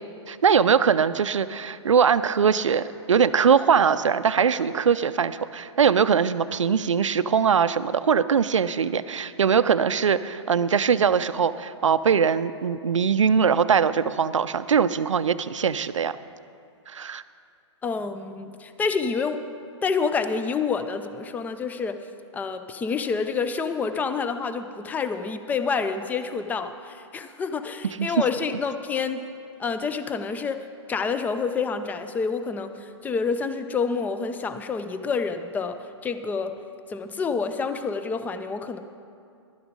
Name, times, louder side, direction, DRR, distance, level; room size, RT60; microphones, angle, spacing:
voice 1, 0.3-16.2 16.9-17.2 28.0-28.1, right 6 dB, 85° right, 14 dB, 0.5 m, -21 dB
voice 2, 17.8-19.4 19.8-22.0 22.3-29.2 29.6-35.8 36.0-36.6 36.9-38.8, left 5 dB, 10° left, 9 dB, 0.5 m, -28 dB
12.0 x 9.4 x 5.2 m, 2.4 s
hypercardioid pair, 125°, 16 cm